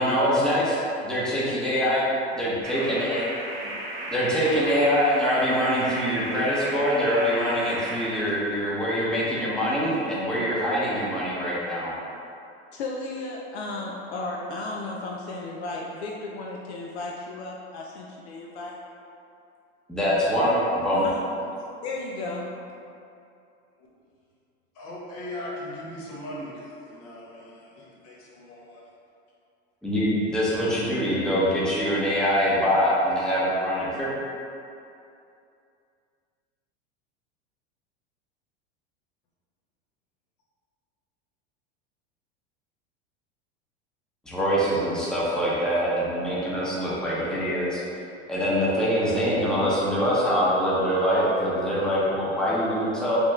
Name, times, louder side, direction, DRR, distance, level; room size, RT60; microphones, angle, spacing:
voice 1, 0.0-0.8 1.1-2.0 2.3-3.2 4.1-11.9 19.9-21.0 29.8-34.1 44.3-47.8 48.3-53.2, equal, ahead, -8 dB, 0.7 m, -24 dB
sound 1, 2.6-8.2, right 1 dB, 40° right, 0.8 m, -35 dB
voice 2, 12.7-18.8 20.9-22.5, left 2 dB, 75° left, -2 dB, 0.5 m, -34 dB
voice 3, 24.7-28.8, left 1 dB, 60° left, -5 dB, 1.0 m, -39 dB
3.4 x 2.4 x 3.1 m, 2.6 s
hypercardioid pair, 95°, 33 cm